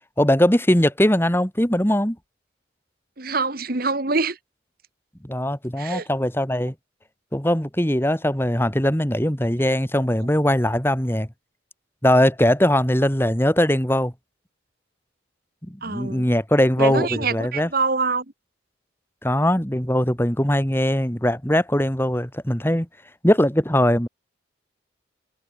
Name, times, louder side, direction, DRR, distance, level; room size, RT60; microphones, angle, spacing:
voice 1, 0.2-2.2 5.2-6.7 7.3-11.3 12.0-14.1 15.6-17.7 19.2-22.9 23.2-24.1, equal, 10° left, 2.5 m, -20 dB
voice 2, 3.2-4.4 5.8-6.1 15.8-16.3 16.8-18.2, right 4 dB, 50° right, 1.7 m, -25 dB
head